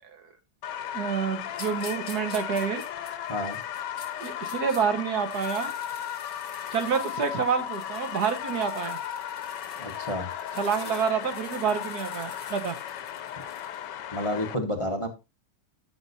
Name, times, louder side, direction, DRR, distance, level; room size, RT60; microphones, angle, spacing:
sound 1, 0.6-14.5, left 10 dB, 80° left, 1.4 m, -36 dB
voice 1, 0.9-2.8 4.2-5.7 6.7-9.0 10.5-12.8, right 6 dB, 65° right, 7 dB, 1.6 m, -28 dB
sound 2, 1.5-4.8 5.2-13.9, left 2 dB, 60° left, 4.1 m, -48 dB
voice 2, 9.8-10.3 14.1-15.1, left 1 dB, 20° left, 3 dB, 1.3 m, -30 dB
13.5 x 6.1 x 2.7 m, 0.25 s
omnidirectional pair, 1.9 m